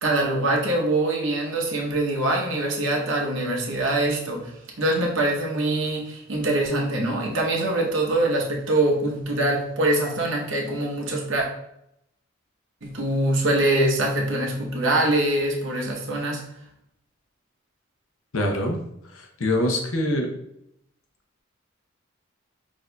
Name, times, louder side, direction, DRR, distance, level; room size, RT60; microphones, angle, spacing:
voice 1, 0.0-4.5 4.8-11.5 12.8-16.4, right 1 dB, 65° right, -1 dB, 0.8 m, -24 dB
voice 2, 18.3-18.8 19.1-20.3, left 1 dB, 80° left, 2 dB, 0.7 m, -24 dB
6.2 x 2.6 x 2.2 m, 0.78 s
head